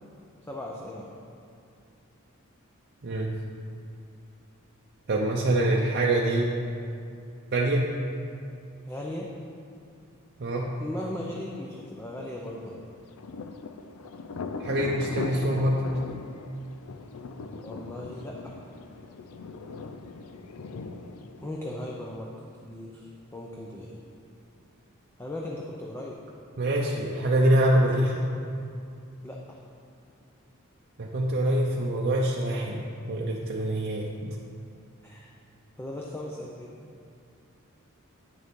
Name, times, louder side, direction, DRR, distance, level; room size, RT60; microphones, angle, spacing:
voice 1, 0.4-1.1 8.9-9.3 10.8-12.8 17.6-18.6 21.4-22.3 22.6-24.0 25.2-26.2 27.2-27.8 29.2-29.6 35.0-35.3 35.8-36.8, left 1 dB, 10° left, -2 dB, 0.5 m, -38 dB
voice 2, 5.1-6.5 7.5-7.9 10.4-10.7 14.6-15.9 26.6-28.3 31.0-34.4, right 1 dB, 50° right, -2 dB, 0.6 m, -25 dB
Thunder, 12.7-22.2, left 4 dB, 90° left, 0.5 m, -39 dB
9.0 x 6.5 x 3.6 m, 2.5 s
head